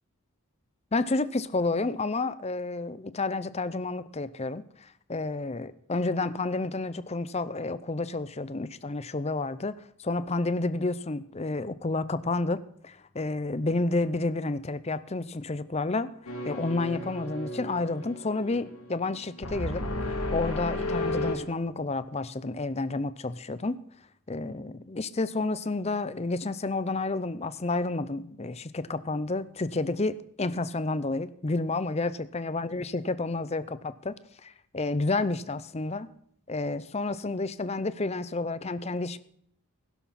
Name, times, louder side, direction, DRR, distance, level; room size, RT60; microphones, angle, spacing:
voice 1, 0.9-16.1 16.5-23.8 24.3-34.2 34.4-36.1 36.5-39.2, left 3 dB, 30° left, 14 dB, 0.6 m, -30 dB
sound 1, 16.2-21.3, left 1 dB, 85° left, 2.6 m, -33 dB
16.0 x 12.0 x 4.2 m, 0.67 s
head